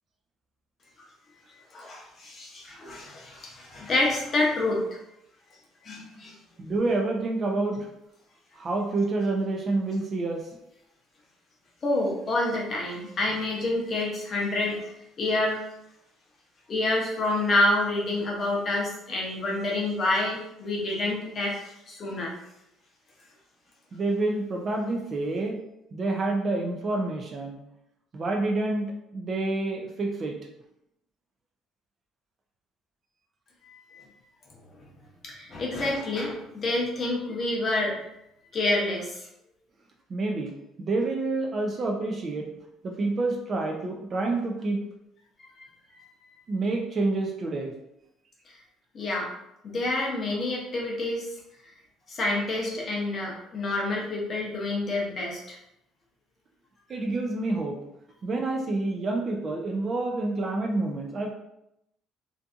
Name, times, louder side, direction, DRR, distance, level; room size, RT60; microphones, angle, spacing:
voice 1, 1.7-4.8 5.8-6.3 11.8-14.9 15.2-15.6 16.7-22.3 33.7-34.0 35.2-38.1 38.5-39.3 45.6-45.7 48.9-49.3 49.6-51.3 52.1-55.6, left 2 dB, 30° left, -2 dB, 0.6 m, -28 dB
voice 2, 6.6-7.9 8.6-10.4 23.9-25.6 25.9-27.6 28.1-30.4 40.1-40.5 40.8-42.5 42.8-44.8 46.5-47.7 56.9-57.8 58.2-61.3, right 2 dB, 30° right, 2 dB, 0.3 m, -28 dB
2.6 x 2.5 x 2.4 m, 0.83 s
cardioid pair, 155°, 0 cm